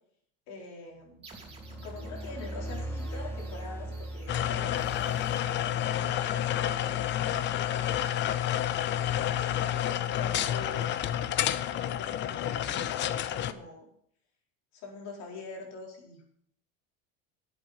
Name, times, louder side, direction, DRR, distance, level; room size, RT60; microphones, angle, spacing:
voice 1, 0.5-1.2 1.7-5.3 5.6-7.0 9.4-11.1 11.7-13.9 14.7-16.2, left 3 dB, 60° left, -1 dB, 4.6 m, -44 dB
sound 1, 1.2-6.7, right 3 dB, 20° right, 3.0 m, -54 dB
sound 2, 1.3-6.0, right 1 dB, 10° left, 2.2 m, -39 dB
sound 3, 4.3-13.5, left 11 dB, 35° left, 0.6 m, -29 dB
11.0 x 8.0 x 5.8 m, 0.66 s
cardioid pair, 145°, 30 cm